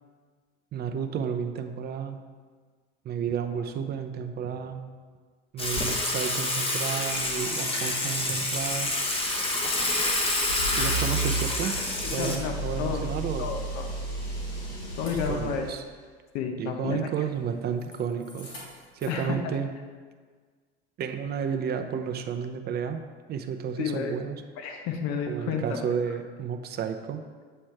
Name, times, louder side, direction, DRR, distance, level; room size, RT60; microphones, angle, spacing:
voice 1, 0.7-2.2 3.0-4.8 5.5-8.9 10.7-11.7 12.1-13.5 15.1-15.8 16.6-18.5 18.9-19.7 21.0-23.0 23.3-24.4 25.3-27.2, right 7 dB, 30° right, 6 dB, 0.6 m, -32 dB
Water / Water tap faucet / Sink (filling or washing), 5.6-12.3, left 2 dB, 20° left, 1.0 m, -28 dB
sound 1, 6.3-7.7 8.0-15.8 17.3-18.0 18.2-19.2, right 1 dB, 85° left, 1.7 m, -35 dB
voice 2, 12.2-12.5 12.8-13.0 13.4-14.0 15.0-15.7 16.3-17.1 19.1-19.4 23.8-24.1 24.6-25.9, left 6 dB, 55° left, 4 dB, 0.8 m, -31 dB
7.7 x 3.1 x 4.6 m, 1.5 s
hypercardioid pair, 80°, 31 cm